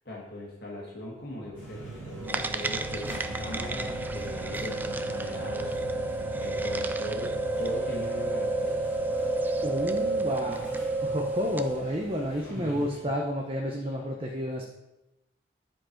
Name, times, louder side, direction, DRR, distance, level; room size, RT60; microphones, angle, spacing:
voice 1, 0.0-4.8 5.1-5.7 6.4-8.7 12.3-13.0 13.8-13.9, left 1 dB, 55° left, -3 dB, 1.6 m, -40 dB
sound 1, 1.1-13.4, right 2 dB, 75° right, 1.5 m, -42 dB
sound 2, 1.5-12.9, left 1 dB, 10° left, 2.5 m, -49 dB
sound 3, 2.3-11.8, right 2 dB, 10° right, 0.3 m, -31 dB
voice 2, 9.6-14.6, equal, 30° right, 0 dB, 0.7 m, -31 dB
10.5 x 4.5 x 4.5 m, 0.95 s
head